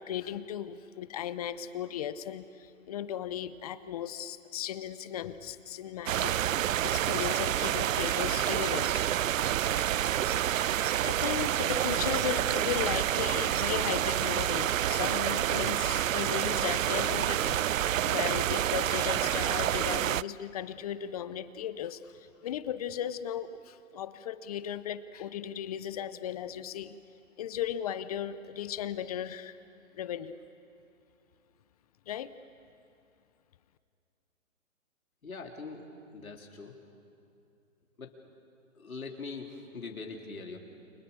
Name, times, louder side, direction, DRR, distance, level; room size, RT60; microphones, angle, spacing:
voice 1, 0.0-9.1 11.0-27.0 27.4-29.6 29.9-30.4 32.1-32.3, left 10 dB, 30° left, 14 dB, 0.7 m, -36 dB
sound 1, 6.1-20.2, right 11 dB, 70° right, 0.5 m, -28 dB
voice 2, 35.2-35.9 36.1-36.7 38.0-38.1 38.8-40.6, left 4 dB, 85° left, 1 dB, 3.7 m, -42 dB
30.0 x 24.5 x 6.9 m, 2.6 s
hypercardioid pair, 145°, 41 cm